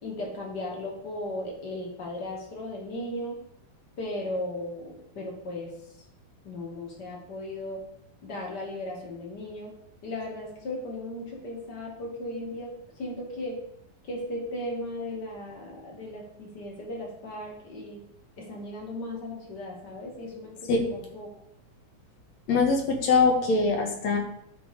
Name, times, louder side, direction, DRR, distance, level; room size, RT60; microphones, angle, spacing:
voice 1, 0.0-3.4 4.0-6.0 6.4-7.8 8.2-9.7 10.0-13.6 14.0-18.1 18.4-21.3, left 1 dB, 35° left, -1 dB, 2.3 m, -36 dB
voice 2, 22.5-24.2, left 4 dB, 55° left, 2 dB, 2.5 m, -22 dB
13.0 x 4.8 x 5.1 m, 0.75 s
omnidirectional pair, 4.2 m